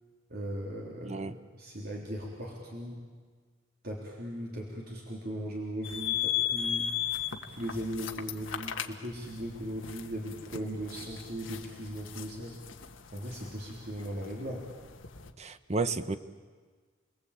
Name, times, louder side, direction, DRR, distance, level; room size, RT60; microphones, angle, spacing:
voice 1, 0.3-1.3 1.6-3.0 3.8-6.9 7.5-12.6 13.1-14.7, equal, 50° right, 3.7 m, -38 dB
voice 2, 1.0-1.4 15.4-16.2, right 3 dB, 35° right, 0.9 m, -32 dB
sound 1, 5.8-15.3, left 10 dB, 80° left, 1.5 m, -36 dB
29.5 x 21.0 x 8.5 m
head